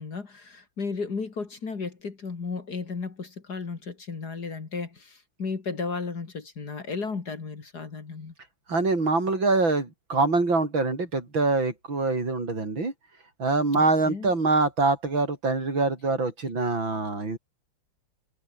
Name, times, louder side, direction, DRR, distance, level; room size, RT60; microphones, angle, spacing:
voice 1, 0.0-8.3 13.7-14.3, left 4 dB, 45° left, 2.8 m, -34 dB
voice 2, 8.7-12.9 13.4-17.4, right 3 dB, 60° right, 5.8 m, -24 dB
omnidirectional pair, 2.4 m